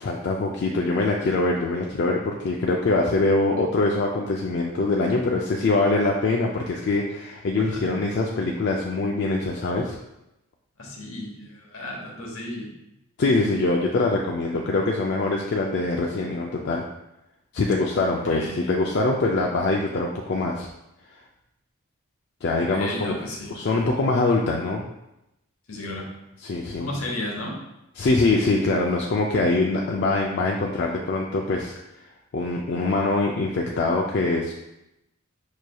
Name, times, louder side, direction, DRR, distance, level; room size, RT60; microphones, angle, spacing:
voice 1, 0.0-10.0 13.2-16.8 17.5-20.7 22.4-23.2 23.5-24.9 26.4-26.9 28.0-31.7 32.3-34.5, left 2 dB, 55° left, -1 dB, 0.4 m, -23 dB
voice 2, 10.8-12.7 18.3-18.8 22.7-23.6 25.7-26.1 26.8-27.6, left 1 dB, 75° left, -1 dB, 0.9 m, -33 dB
5.4 x 3.2 x 2.2 m, 0.89 s
head